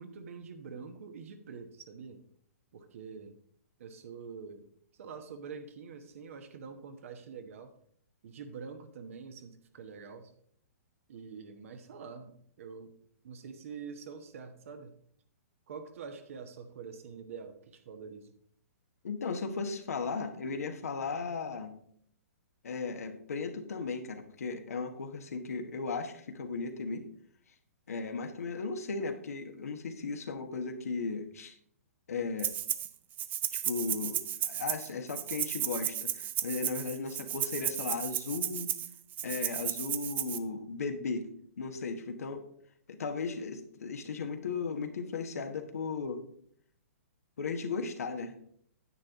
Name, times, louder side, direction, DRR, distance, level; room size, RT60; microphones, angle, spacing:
voice 1, 0.0-2.2 2.7-3.4 3.8-4.7 4.9-7.8 8.2-10.3 11.1-12.9 13.2-14.9 15.7-18.3, right 5 dB, 60° right, 7 dB, 1.1 m, -46 dB
voice 2, 19.0-21.7 22.6-27.1 27.9-31.5 32.1-32.5 33.5-38.7 39.2-41.3 41.6-42.4 42.9-46.2 47.4-48.3, left 4 dB, 75° left, 6 dB, 1.3 m, -36 dB
Rattle (instrument), 32.4-32.9 33.2-40.4, right 11 dB, 20° right, 0.4 m, -34 dB
9.7 x 7.8 x 3.6 m, 0.63 s
hypercardioid pair, 125°, 8 cm